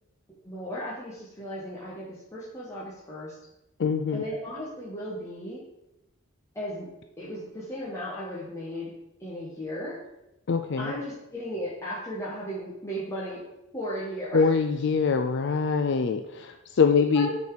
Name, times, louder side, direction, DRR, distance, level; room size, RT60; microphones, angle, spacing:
voice 1, 0.3-3.3 4.1-5.6 6.5-6.9 7.2-8.9 9.2-10.0 10.8-13.4 13.7-14.5 16.9-17.3, equal, 15° left, -8 dB, 1.4 m, -35 dB
voice 2, 3.8-4.2 10.5-10.9 14.3-17.3, left 5 dB, 55° left, 7 dB, 0.4 m, -24 dB
8.1 x 4.5 x 4.9 m, 0.89 s
head